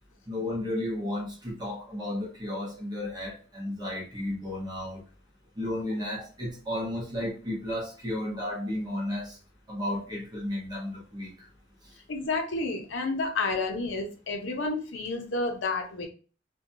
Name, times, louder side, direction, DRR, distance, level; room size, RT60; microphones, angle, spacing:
voice 1, 0.3-5.0 5.6-9.4 9.7-11.5 11.8-11.9, left 1 dB, 20° right, -3 dB, 0.7 m, -33 dB
voice 2, 12.1-16.1, left 3 dB, 70° left, 3 dB, 0.6 m, -30 dB
2.8 x 2.2 x 2.6 m, 0.37 s
head